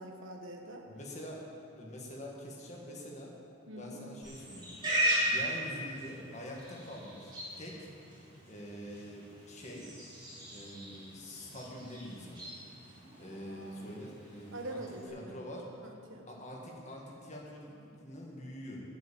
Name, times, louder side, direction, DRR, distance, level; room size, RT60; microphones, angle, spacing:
voice 1, 0.0-0.9 3.7-4.0 14.5-15.4 15.8-16.3, right 1 dB, 75° right, 2 dB, 1.3 m, -44 dB
voice 2, 0.9-1.4 1.8-3.3 3.8-4.7 5.2-7.9 8.5-9.9 10.5-12.5 13.2-14.8 15.1-15.7 16.3-18.8, equal, 35° left, -2 dB, 1.8 m, -45 dB
Livestock farm animals working animals, 4.2-15.1, right 1 dB, 25° right, 3.1 m, -38 dB
11.0 x 6.3 x 8.6 m, 2.7 s
head